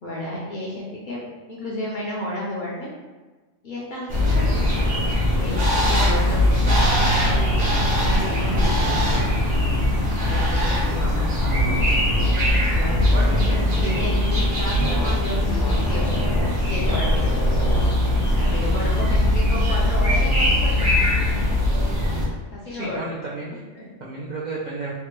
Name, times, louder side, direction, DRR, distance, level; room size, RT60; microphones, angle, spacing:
voice 1, 0.0-2.9 3.6-5.0 5.4-7.6 8.0-9.6 10.2-11.7 12.7-17.3 18.3-20.9 22.5-23.1 23.5-24.0, left 1 dB, 55° left, -5 dB, 0.6 m, -32 dB
sound 1, 4.1-22.2, left 1 dB, 50° right, 0.9 m, -21 dB
sound 2, 11.6-11.8 12.1-12.3 13.3-14.1 14.7-15.2 15.5-17.9, equal, 85° left, 0.9 m, -26 dB
voice 2, 13.1-14.1 18.7-19.1 22.6-23.5 24.0-24.9, right 2 dB, 65° right, -6 dB, 0.4 m, -32 dB
3.3 x 2.1 x 2.9 m, 1.3 s
omnidirectional pair, 1.3 m